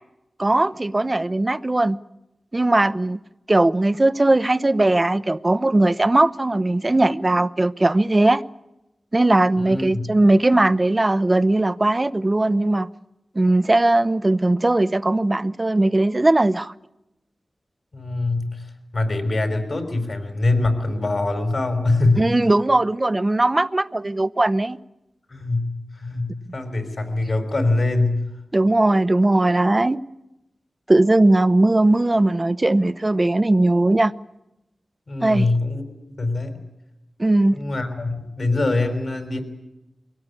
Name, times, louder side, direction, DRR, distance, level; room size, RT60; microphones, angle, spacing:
voice 1, 0.4-2.0 2.5-3.2 3.5-8.4 9.1-12.9 13.3-16.7 22.2-24.8 28.5-30.0 30.9-34.1 35.2-35.5 37.2-37.6, right 2 dB, 30° right, 0.8 m, -19 dB
voice 2, 9.6-10.1 17.9-22.3 25.3-28.2 35.1-35.8 36.2-36.6 37.5-39.4, left 2 dB, 60° left, 5.1 m, -23 dB
23.5 x 17.5 x 9.8 m
cardioid pair, 55°, 0 cm